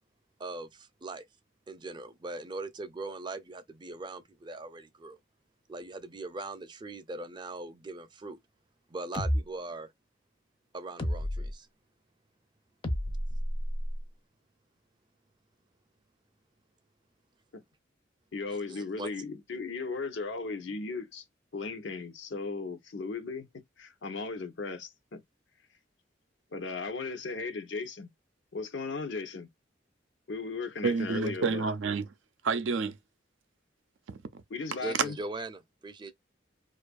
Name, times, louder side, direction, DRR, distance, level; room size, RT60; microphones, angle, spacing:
voice 1, 0.4-1.2 1.7-5.2 5.7-8.4 8.9-9.9 10.7-11.7 18.5-19.1 34.8-36.1, right 2 dB, 25° right, 0.4 m, -40 dB
sound 1, 9.1-9.4 11.0-11.5 12.8-14.0, equal, 30° left, 0.5 m, -30 dB
voice 2, 18.3-21.2 21.5-25.2 26.5-28.1 28.5-29.5 30.3-31.7 34.5-35.2, left 4 dB, 75° left, 0.7 m, -36 dB
voice 3, 30.8-32.1 32.4-33.0 34.1-34.4, right 4 dB, 80° right, 0.5 m, -29 dB
2.6 x 2.4 x 2.2 m
head